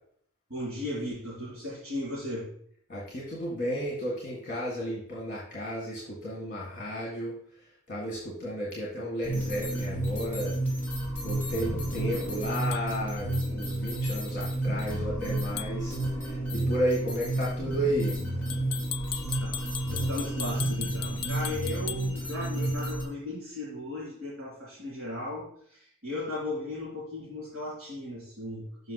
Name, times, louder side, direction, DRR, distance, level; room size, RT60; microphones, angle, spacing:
voice 1, 0.5-2.5 17.6-17.7 19.4-28.9, left 1 dB, 70° right, -8 dB, 3.0 m, -36 dB
voice 2, 2.9-10.6 11.2-18.2, equal, 40° left, -4 dB, 1.7 m, -33 dB
sound 1, 9.2-23.0, right 1 dB, 10° left, 2.6 m, -31 dB
sound 2, 12.7-12.9 15.6-15.8 18.5-22.1, left 10 dB, 80° left, 0.4 m, -37 dB
6.5 x 5.6 x 4.1 m, 0.63 s
head